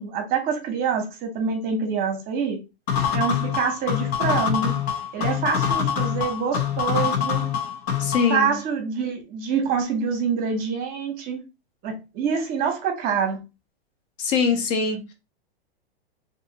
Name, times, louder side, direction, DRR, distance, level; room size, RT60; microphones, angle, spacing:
voice 1, 0.0-2.6 3.1-4.7 5.1-7.5 8.3-11.4 11.8-13.4, right 6 dB, 30° right, 0.8 m, -26 dB
sound 1, 2.9-8.4, left 8 dB, 75° left, 1.0 m, -25 dB
voice 2, 8.0-8.5 14.2-15.1, left 5 dB, 45° left, 0.9 m, -23 dB
2.7 x 2.7 x 2.7 m
hypercardioid pair, 140°, 31 cm